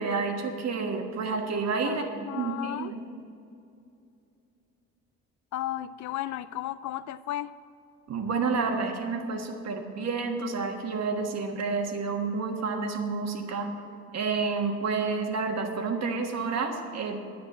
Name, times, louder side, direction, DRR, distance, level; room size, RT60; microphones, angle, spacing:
voice 1, 0.0-2.0 2.3-3.0 8.1-13.7 14.1-17.2, right 4 dB, 60° right, 3 dB, 1.5 m, -29 dB
voice 2, 1.8-2.9 5.5-7.5 14.9-15.0, left 13 dB, 70° left, 16 dB, 0.5 m, -34 dB
10.5 x 9.3 x 6.3 m, 2.6 s
cardioid pair, 90°, 30 cm